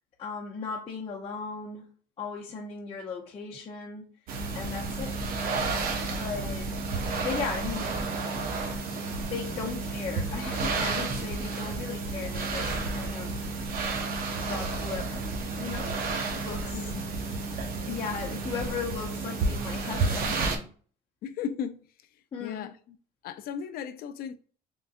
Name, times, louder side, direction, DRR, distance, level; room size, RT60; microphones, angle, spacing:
voice 1, 0.2-1.9 2.2-4.1 4.5-5.1 6.1-6.7 7.2-8.1 9.3-13.4 14.4-15.9 16.3-16.8 17.9-20.6 22.3-22.7, left 5 dB, 35° left, 0.8 m, -37 dB
sound 1, 4.3-20.6, right 3 dB, 60° right, 0.7 m, -31 dB
voice 2, 16.7-17.0 21.2-21.9 22.4-23.0 23.2-24.4, left 8 dB, 60° left, 0.4 m, -36 dB
3.7 x 2.5 x 2.4 m
cardioid pair, 110°, 17 cm